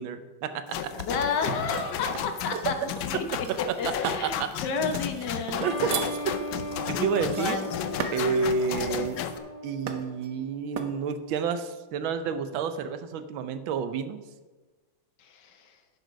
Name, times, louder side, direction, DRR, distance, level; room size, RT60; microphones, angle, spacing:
voice 1, 0.0-0.9 4.0-4.5 5.6-5.9 6.9-7.6 8.1-9.2 9.6-14.3, right 5 dB, 90° right, 10 dB, 1.5 m, -30 dB
sound 1, 0.7-9.4, left 9 dB, 80° left, 1.5 m, -34 dB
voice 2, 1.1-3.2 3.6-5.7 6.9-7.7 15.2-15.8, left 4 dB, 65° left, 6 dB, 1.5 m, -31 dB
sound 2, 1.7-2.7 3.4-4.3 4.8-8.4 8.9-9.2 9.9-10.3 10.8-11.0, right 6 dB, 60° right, 1.0 m, -37 dB
sound 3, 5.6-11.1, equal, 25° left, 0.9 m, -38 dB
11.0 x 6.7 x 5.1 m, 1.3 s
omnidirectional pair, 2.1 m